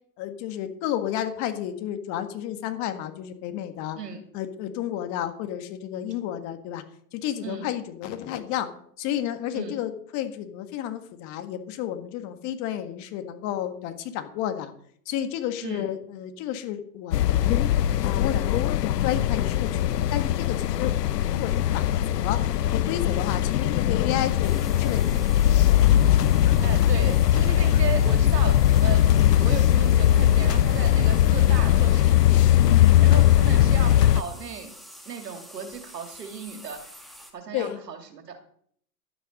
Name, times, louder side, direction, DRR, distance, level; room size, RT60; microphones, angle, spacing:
voice 1, 0.2-4.0 4.3-6.8 7.1-8.7 9.0-14.7 15.0-17.6 18.1-20.9 21.3-22.4 22.7-25.3 29.2-29.3 32.3-33.1 37.5-37.8, left 11 dB, 35° left, 9 dB, 1.7 m, -31 dB
sound 1, 17.1-34.2, left 11 dB, 85° left, 0.7 m, -20 dB
sound 2, 24.4-37.3, equal, ahead, 1.7 m, -47 dB
voice 2, 26.6-29.0 29.4-32.5 33.0-34.7 35.1-36.9 37.3-38.4, right 6 dB, 90° right, 6 dB, 2.6 m, -36 dB
12.0 x 9.4 x 5.3 m, 0.63 s
hypercardioid pair, 125°, 47 cm